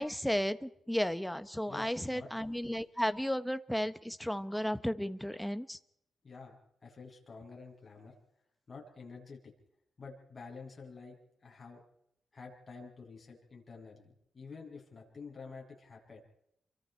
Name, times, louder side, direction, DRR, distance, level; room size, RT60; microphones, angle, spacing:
voice 1, 0.0-5.8, equal, 5° left, 11 dB, 1.1 m, -34 dB
voice 2, 1.7-2.3 6.2-6.6 6.8-8.1 8.7-9.4 10.0-11.8 12.3-16.2, left 4 dB, 35° left, -1 dB, 7.8 m, -49 dB
29.0 x 24.0 x 4.5 m, 0.75 s
wide cardioid pair, 115°, 0 cm